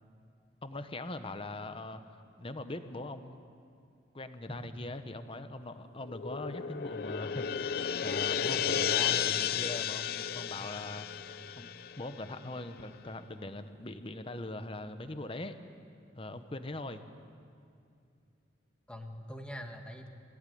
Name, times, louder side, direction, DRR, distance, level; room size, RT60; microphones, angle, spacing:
voice 1, 0.6-2.0 2.4-3.4 4.1-11.1 11.6-11.7 12.0-15.6 16.2-17.0, left 2 dB, 30° left, 9 dB, 1.0 m, -41 dB
sound 1, 6.0-12.6, left 8 dB, 55° left, 0.5 m, -33 dB
voice 2, 8.5-9.4 10.6-10.9 16.3-16.4 18.9-20.1, equal, 5° left, 4 dB, 1.5 m, -44 dB
22.0 x 16.0 x 9.3 m, 2.4 s
head